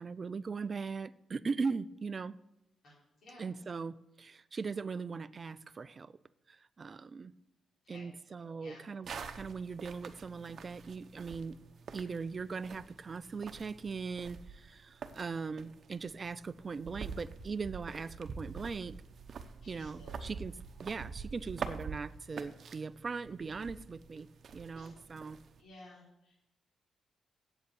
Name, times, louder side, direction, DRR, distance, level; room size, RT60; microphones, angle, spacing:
voice 1, 0.0-2.4 3.4-6.1 6.5-7.3 7.9-11.6 11.9-19.0 19.7-24.3 24.5-25.4, right 4 dB, 30° right, 15 dB, 0.4 m, -40 dB
sound 1, 9.0-25.6, right 5 dB, 50° right, 0.8 m, -46 dB
voice 2, 19.6-20.2 24.7-24.9 25.6-26.3, left 2 dB, 60° left, -7 dB, 4.3 m, -55 dB
8.0 x 7.9 x 8.5 m, 0.86 s
wide cardioid pair, 150°, 0 cm